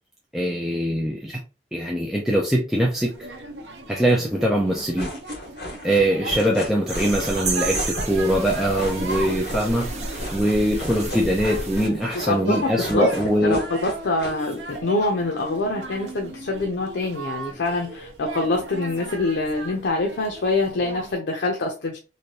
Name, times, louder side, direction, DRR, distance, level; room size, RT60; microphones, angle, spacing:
voice 1, 0.3-1.4 1.7-3.1 3.9-5.1 5.8-9.9 10.3-13.6, equal, ahead, 0.4 m, -22 dB
sound 1, 2.8-21.2, right 2 dB, 85° right, 0.7 m, -37 dB
sound 2, 4.8-14.8, equal, 55° left, 1.5 m, -36 dB
sound 3, 6.9-11.9, right 2 dB, 40° right, 0.7 m, -31 dB
voice 2, 13.5-22.0, left 2 dB, 85° left, 0.6 m, -25 dB
3.2 x 2.6 x 2.7 m
head